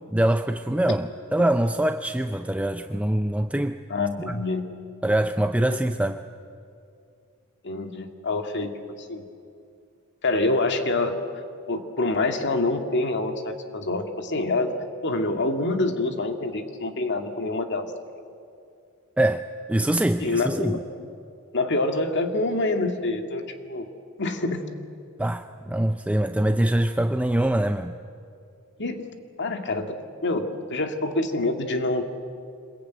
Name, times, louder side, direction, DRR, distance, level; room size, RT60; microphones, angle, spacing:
voice 1, 0.1-3.8 4.3-4.4 5.0-6.2 19.2-20.8 25.2-27.9, right 1 dB, 5° right, 8 dB, 0.5 m, -24 dB
voice 2, 3.9-4.7 5.7-5.8 7.6-8.7 9.0-9.3 10.2-11.1 11.7-14.7 15.0-17.9 20.2-21.1 21.5-23.9 24.2-24.6 28.8-29.1 29.4-29.9 30.2-32.0, left 2 dB, 55° left, 6 dB, 2.1 m, -26 dB
25.5 x 21.5 x 9.3 m, 2.5 s
head